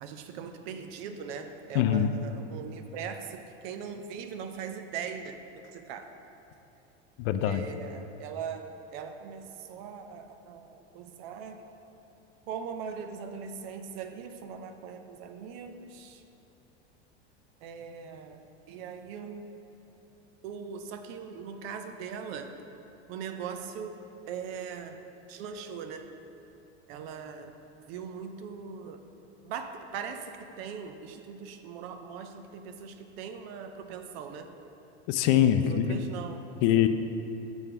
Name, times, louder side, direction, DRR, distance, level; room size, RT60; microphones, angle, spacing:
voice 1, 0.0-6.0 7.4-8.7 8.9-11.6 12.5-16.2 17.6-19.5 20.4-22.5 23.1-24.0 24.3-25.0 25.3-26.1 26.9-27.5 27.9-29.0 29.4-34.5 35.6-36.4, right 6 dB, 65° right, 6 dB, 0.6 m, -40 dB
voice 2, 1.7-2.1 7.2-7.6 35.1-36.0 36.6-36.9, left 10 dB, 60° left, 10 dB, 0.5 m, -23 dB
6.2 x 3.6 x 5.6 m, 2.9 s
hypercardioid pair, 95°, 33 cm